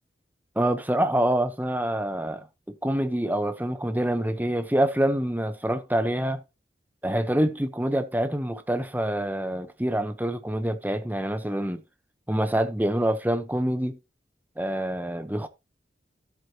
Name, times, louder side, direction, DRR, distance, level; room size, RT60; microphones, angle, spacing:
voice 1, 0.6-6.4 7.0-11.8 12.3-14.0 14.6-15.5, right 1 dB, 10° right, 0.9 m, -26 dB
14.0 x 8.0 x 2.9 m
head